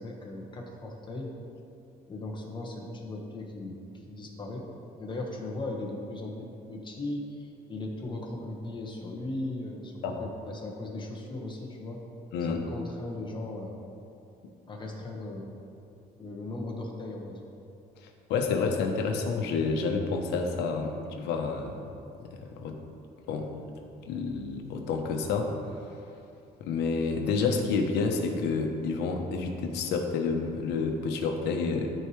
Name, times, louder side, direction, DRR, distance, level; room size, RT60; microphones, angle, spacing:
voice 1, 0.0-1.3 2.1-4.7 5.0-12.0 12.5-13.8 14.7-15.5 16.2-17.5, left 2 dB, 30° left, 0 dB, 1.4 m, -38 dB
voice 2, 12.3-12.6 18.3-21.9 22.3-22.8 23.3-23.5 24.1-25.5 26.6-31.9, left 4 dB, 85° left, 3 dB, 0.9 m, -29 dB
13.5 x 4.7 x 3.2 m, 2.7 s
cardioid pair, 110°, 17 cm